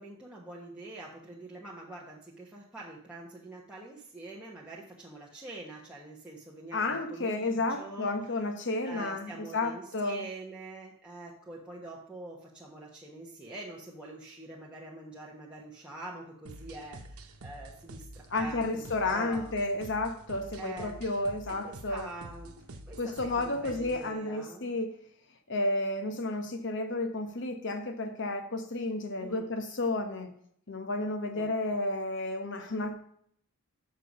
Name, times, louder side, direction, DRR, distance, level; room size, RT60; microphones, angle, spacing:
voice 1, 0.0-8.2 8.8-19.5 20.6-21.0 21.4-22.6 22.9-24.7 29.2-29.5 31.3-31.5, right 2 dB, 5° right, -6 dB, 1.2 m, -45 dB
voice 2, 6.7-10.2 18.3-22.1 23.0-25.0 25.5-30.3 30.7-32.9, left 2 dB, 60° left, 6 dB, 1.2 m, -32 dB
sound 1, 16.5-24.1, right 1 dB, 80° right, 1.0 m, -47 dB
6.6 x 6.4 x 5.3 m, 0.65 s
head